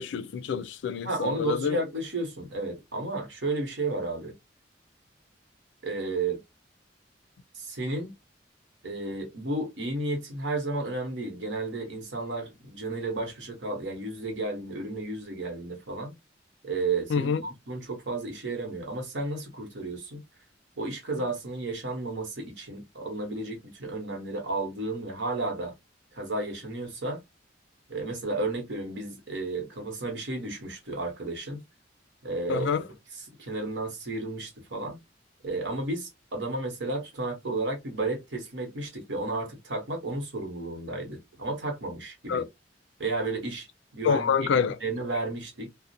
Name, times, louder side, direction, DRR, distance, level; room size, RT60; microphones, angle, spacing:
voice 1, 0.0-1.8 17.1-17.4 32.5-32.8 42.3-42.5 44.0-45.1, left 6 dB, 75° left, 0.3 m, -27 dB
voice 2, 1.0-4.3 5.8-6.4 7.5-8.1 8.8-16.1 16.6-20.2 20.8-25.7 26.1-27.2 27.9-31.6 32.2-32.7 33.4-35.0 35.4-42.5 43.0-43.7 43.9-45.7, right 2 dB, 70° right, 1.0 m, -32 dB
2.4 x 2.1 x 2.6 m
head